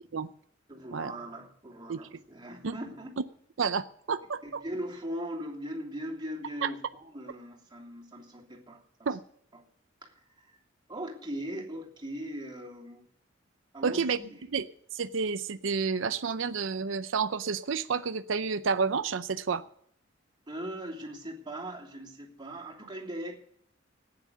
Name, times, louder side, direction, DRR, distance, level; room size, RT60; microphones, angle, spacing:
voice 1, 0.7-3.2 4.4-9.1 9.5-9.6 10.0-10.6 10.9-13.1 13.7-14.4 20.5-23.4, equal, 25° right, 0 dB, 3.0 m, -40 dB
voice 2, 3.6-4.6 6.6-6.7 9.1-9.2 13.8-14.2 14.5-14.6 14.9-19.6, right 5 dB, 85° right, 11 dB, 0.6 m, -30 dB
14.5 x 9.8 x 6.9 m, 0.67 s
head